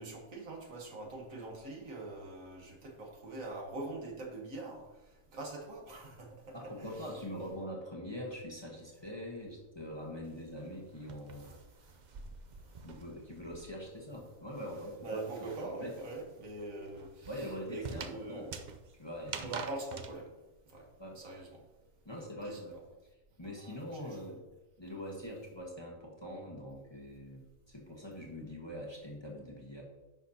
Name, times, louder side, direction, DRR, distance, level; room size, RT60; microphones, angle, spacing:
voice 1, 0.0-4.8 5.3-7.1 11.3-11.9 15.0-17.3 17.7-18.5 19.4-20.3 20.7-20.9 21.2-21.6 22.1-22.6 23.4-24.2, right 2 dB, 70° right, 1 dB, 1.8 m, -43 dB
voice 2, 6.5-11.5 12.8-15.9 17.3-18.5 19.0-19.5 21.0-21.2 22.0-22.8 23.4-24.4 24.8-29.8, equal, 20° left, -2 dB, 1.3 m, -43 dB
sound 1, 10.2-14.0 14.3-20.1, right 5 dB, 50° right, 0.5 m, -46 dB
10.5 x 6.2 x 2.8 m, 1.1 s
omnidirectional pair, 1.5 m